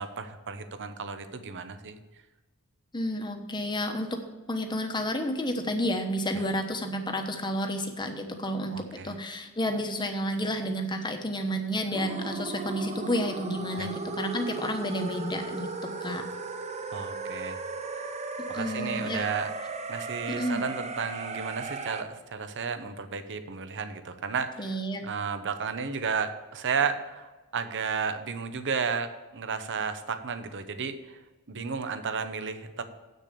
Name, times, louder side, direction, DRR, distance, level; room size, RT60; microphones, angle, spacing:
voice 1, 0.0-2.0 6.3-6.4 8.7-9.2 13.8-13.9 16.9-17.6 18.0-18.1 18.5-19.5 19.9-31.2 31.5-32.8, right 5 dB, 55° right, 10 dB, 0.8 m, -33 dB
voice 2, 2.9-4.2 4.5-16.2 18.5-19.3 20.3-20.6 24.6-25.0, equal, 20° left, 5 dB, 1.1 m, -31 dB
sound 1, 11.9-22.0, right 3 dB, 30° right, 0.7 m, -36 dB
8.4 x 6.5 x 6.8 m, 1.2 s
head